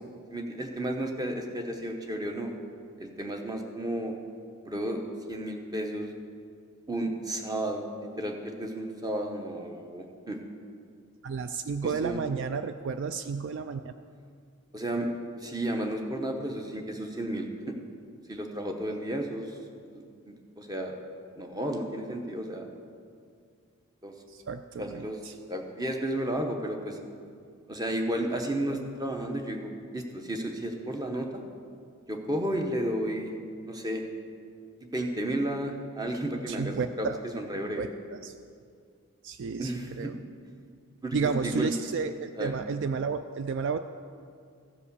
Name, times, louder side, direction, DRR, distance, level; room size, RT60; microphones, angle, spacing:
voice 1, 0.3-2.5 3.0-4.1 4.7-5.0 5.3-6.1 6.9-10.4 11.8-12.2 14.7-15.1 15.4-17.8 18.3-19.6 19.9-21.0 21.4-22.7 24.0-24.1 24.8-25.2 25.5-27.0 27.7-31.4 32.1-33.3 33.7-34.1 34.8-37.9 39.6-40.1 41.0-41.7 42.4-42.5, right 1 dB, 15° right, 3 dB, 0.9 m, -33 dB
voice 2, 11.2-13.9 24.3-25.3 36.5-37.2 37.8-38.3 39.2-40.2 41.1-43.8, right 5 dB, 55° right, 9 dB, 0.3 m, -32 dB
15.0 x 5.1 x 6.8 m, 2.3 s
head